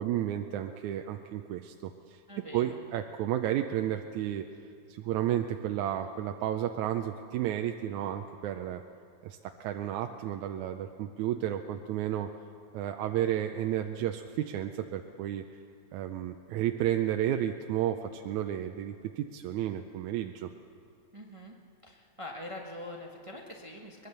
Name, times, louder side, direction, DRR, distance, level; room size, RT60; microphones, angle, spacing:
voice 1, 0.0-2.2 2.5-4.5 4.9-8.8 9.2-12.3 12.7-15.4 15.9-20.5, right 11 dB, 85° right, 5 dB, 2.1 m, -32 dB
voice 2, 2.3-2.8 21.1-21.5 21.8-24.1, left 1 dB, 35° right, 0 dB, 0.5 m, -44 dB
23.0 x 21.0 x 6.7 m, 2.5 s
omnidirectional pair, 3.3 m